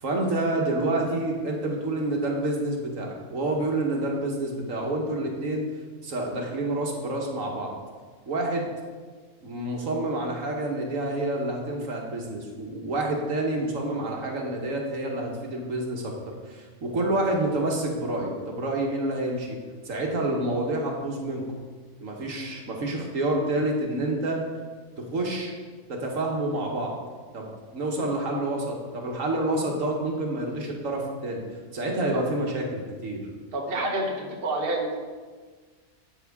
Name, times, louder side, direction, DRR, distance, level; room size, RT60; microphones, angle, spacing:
voice 1, 0.0-5.7 6.0-7.7 8.3-8.7 9.4-19.6 19.9-21.5 22.0-24.4 25.0-25.5 25.9-26.9 27.3-31.4 31.7-33.2, right 2 dB, 65° right, 0 dB, 1.6 m, -28 dB
voice 2, 33.5-34.9, right 2 dB, 45° right, 0 dB, 1.3 m, -28 dB
12.5 x 6.9 x 3.6 m, 1.5 s
omnidirectional pair, 1.5 m